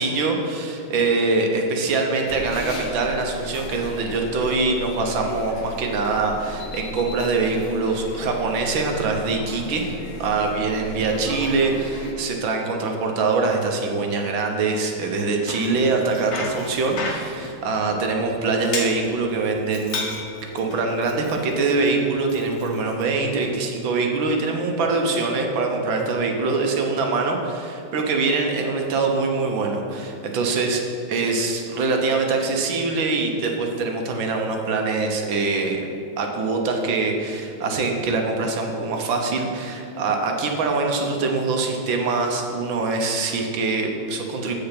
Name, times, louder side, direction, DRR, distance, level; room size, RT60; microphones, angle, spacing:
voice 1, 0.0-9.9 10.2-20.1 20.5-30.8 31.1-35.9 36.2-44.5, right 3 dB, 75° right, 2 dB, 1.7 m, -23 dB
sound 1, 2.3-12.1, left 2 dB, 80° left, 1.8 m, -36 dB
Bicycle, 15.2-23.5, left 3 dB, 45° left, 1.0 m, -35 dB
8.0 x 7.0 x 5.9 m, 2.6 s
omnidirectional pair, 2.2 m